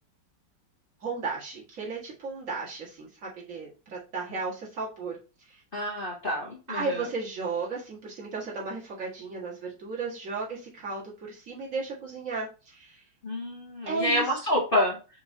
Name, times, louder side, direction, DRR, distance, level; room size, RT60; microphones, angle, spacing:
voice 1, 1.0-5.2 5.5-5.6 6.7-13.0 13.9-14.5, right 4 dB, 40° right, -4 dB, 1.9 m, -35 dB
voice 2, 5.7-7.0 13.2-15.0, left 1 dB, 50° left, -2 dB, 0.6 m, -28 dB
6.1 x 3.0 x 2.7 m, 0.32 s
omnidirectional pair, 2.3 m